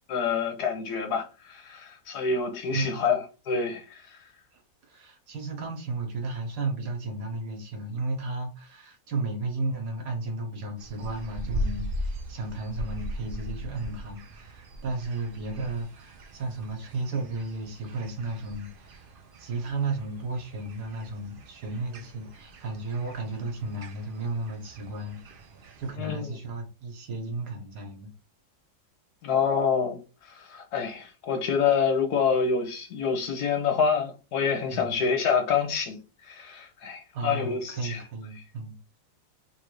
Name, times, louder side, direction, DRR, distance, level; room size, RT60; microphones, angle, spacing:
voice 1, 0.1-3.2 3.5-4.0 26.0-26.3 29.2-30.0 30.3-36.0 36.3-38.0, left 6 dB, 75° left, 1.5 m, -27 dB
voice 2, 2.7-3.2 4.5-4.6 4.9-19.1 19.4-25.2 25.8-28.1 34.7-35.0 37.1-38.7, right 3 dB, 75° right, 1.8 m, -34 dB
sound 1, 10.8-25.9, equal, 55° right, 0.5 m, -39 dB
3.7 x 2.6 x 4.6 m
omnidirectional pair, 1.7 m